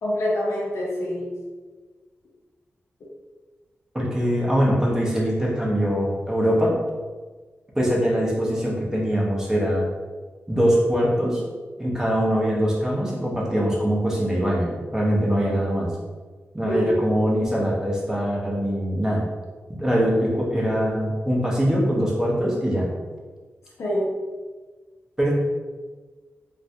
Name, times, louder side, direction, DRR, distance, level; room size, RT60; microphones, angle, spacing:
voice 1, 0.0-1.3 16.6-16.9 23.8-24.1, left 1 dB, 75° left, -3 dB, 0.7 m, -25 dB
voice 2, 3.9-6.8 7.8-9.8 10.5-11.4 11.8-15.9 16.5-19.2 19.7-22.9 25.2-25.3, equal, 10° right, -4 dB, 0.6 m, -22 dB
3.2 x 2.4 x 2.7 m, 1.4 s
wide cardioid pair, 165°, 5 cm